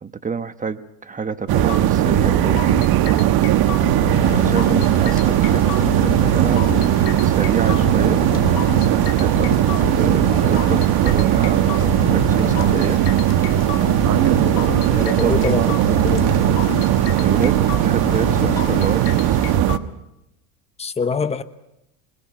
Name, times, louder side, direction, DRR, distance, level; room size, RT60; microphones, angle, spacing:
voice 1, 0.0-2.6 4.0-8.2 9.2-13.0 14.9-15.4 17.0-19.4, right 5 dB, 15° right, 1.2 m, -28 dB
sound 1, 1.5-19.8, right 12 dB, 50° right, 1.3 m, -18 dB
sound 2, 1.7-19.8, left 12 dB, 85° left, 1.5 m, -30 dB
sound 3, 4.1-19.6, left 5 dB, 35° left, 3.5 m, -34 dB
voice 2, 14.9-16.3 20.8-21.4, left 5 dB, 15° left, 1.1 m, -24 dB
26.0 x 21.0 x 6.1 m
supercardioid pair, 100°, 46 cm